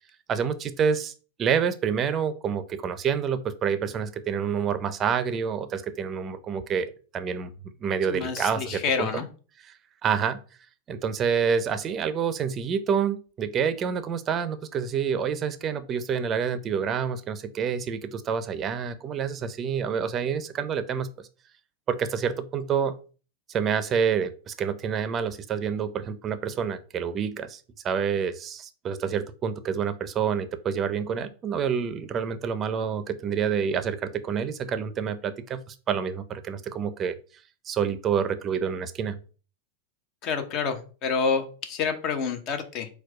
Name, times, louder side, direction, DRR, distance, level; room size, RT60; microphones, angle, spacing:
voice 1, 0.3-1.1 1.4-7.5 7.8-9.2 10.0-10.4 10.9-21.3 21.9-23.0 23.5-37.2 37.7-39.2, right 7 dB, 30° right, 12 dB, 0.5 m, -28 dB
voice 2, 8.1-9.3 40.2-42.9, left 5 dB, 40° left, 8 dB, 0.9 m, -28 dB
4.5 x 2.3 x 4.7 m, 0.37 s
hypercardioid pair, 130°, 0 cm